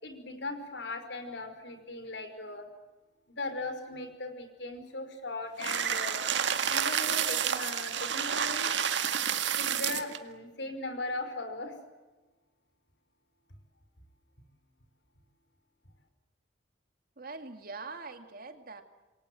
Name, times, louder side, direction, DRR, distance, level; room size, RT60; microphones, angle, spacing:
voice 1, 0.0-2.7 3.3-6.2 6.7-8.7 9.6-11.8, left 2 dB, 70° left, 8 dB, 5.5 m, -38 dB
sound 1, 5.6-10.2, right 8 dB, 75° right, 2.0 m, -29 dB
voice 2, 17.2-18.8, right 3 dB, 55° right, 7 dB, 2.5 m, -43 dB
28.0 x 23.0 x 7.9 m, 1.2 s
head